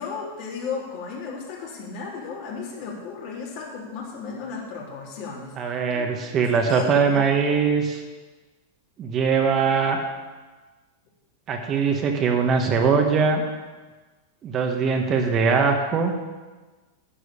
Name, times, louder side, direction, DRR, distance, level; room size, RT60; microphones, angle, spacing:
voice 1, 0.0-6.1 6.5-7.3, left 5 dB, 55° left, -3 dB, 3.4 m, -35 dB
voice 2, 5.6-8.0 9.0-10.0 11.5-13.4 14.4-16.1, right 5 dB, 35° right, 3 dB, 1.5 m, -21 dB
11.5 x 4.9 x 8.4 m, 1.3 s
hypercardioid pair, 115°, 0 cm